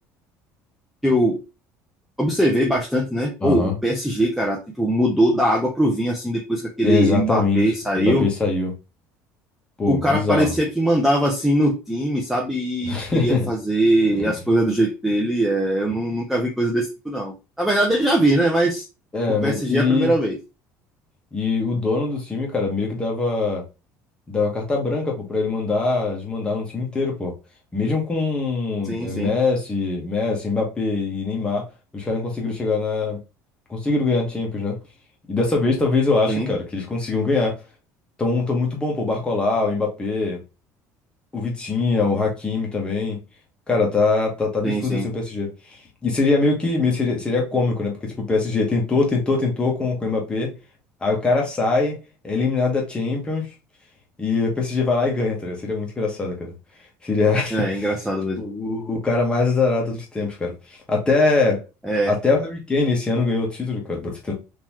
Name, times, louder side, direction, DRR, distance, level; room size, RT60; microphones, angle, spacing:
voice 1, 1.0-1.4 2.2-8.3 9.9-18.8 19.4-20.4 28.8-29.3 36.3-36.5 44.6-45.1 57.5-58.4 61.8-62.1, right 1 dB, ahead, 0.6 m, -21 dB
voice 2, 3.4-3.7 6.8-7.6 7.9-8.7 9.8-10.6 12.8-13.4 14.2-14.3 19.1-20.1 21.3-23.6 24.3-27.3 27.7-31.7 31.9-33.2 33.7-34.8 35.3-37.6 38.2-40.4 41.3-43.2 43.7-50.5 51.0-52.0 52.2-53.5 54.2-56.5 57.0-57.9 58.4-61.7 62.1-64.3, left 3 dB, 15° left, 1.3 m, -23 dB
3.8 x 2.9 x 3.0 m
cardioid pair, 135°, 6 cm